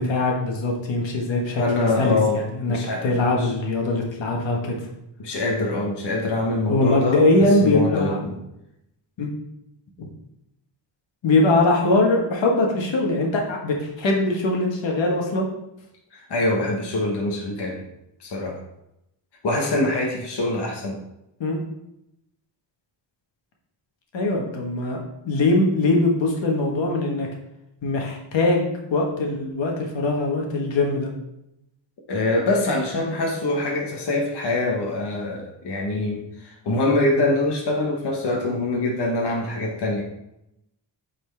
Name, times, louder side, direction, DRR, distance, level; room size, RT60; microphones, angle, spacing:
voice 1, 0.0-4.8 6.7-8.2 9.2-9.3 10.0-10.1 11.2-15.5 21.4-21.6 24.1-25.0 25.2-27.3 27.8-31.1, left 2 dB, 85° left, 0 dB, 1.4 m, -22 dB
voice 2, 1.6-3.1 3.4-3.5 5.2-8.4 16.1-17.8 18.2-18.6 19.4-21.0 32.1-40.0, left 2 dB, 65° left, 0 dB, 1.2 m, -24 dB
8.5 x 4.4 x 3.4 m, 0.85 s
wide cardioid pair, 130°, 44 cm